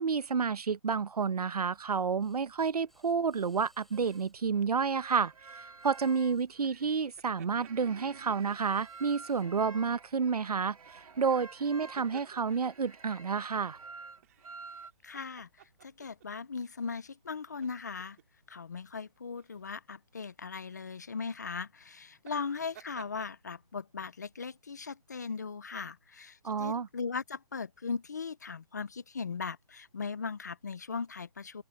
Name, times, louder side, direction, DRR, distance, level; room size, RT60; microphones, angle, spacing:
voice 1, 0.0-13.8 26.4-26.9, right 5 dB, 80° right, 0.9 m, -30 dB
sound 1, 1.7-16.2, left 1 dB, ahead, 7.1 m, -72 dB
sound 2, 2.9-3.3 3.8-14.9, right 4 dB, 65° right, 2.6 m, -50 dB
sound 3, 6.6-8.7 9.4-9.6 11.5-12.8 14.2-16.3 16.6-16.8 17.5-18.2 19.4-19.6 22.2-23.3, right 12 dB, 25° right, 2.4 m, -57 dB
voice 2, 15.0-15.5 15.8-18.2 18.5-31.6, left 5 dB, 30° left, 0.5 m, -38 dB
open air
hypercardioid pair, 170°, 20 cm